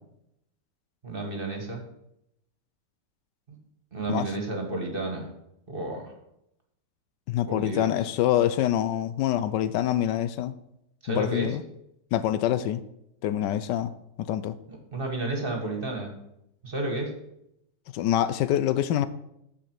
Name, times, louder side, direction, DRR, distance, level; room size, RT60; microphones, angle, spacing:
voice 1, 1.0-1.8 3.5-3.6 3.9-5.3 5.7-6.1 7.5-8.1 11.0-11.5 14.7-16.1 16.6-17.1, right 2 dB, 30° right, 2 dB, 1.7 m, -31 dB
voice 2, 7.3-10.5 11.1-11.6 12.1-12.8 13.2-13.9 14.2-14.6 17.9-19.1, left 11 dB, 85° left, 14 dB, 1.2 m, -25 dB
14.5 x 5.1 x 4.7 m, 0.80 s
omnidirectional pair, 1.9 m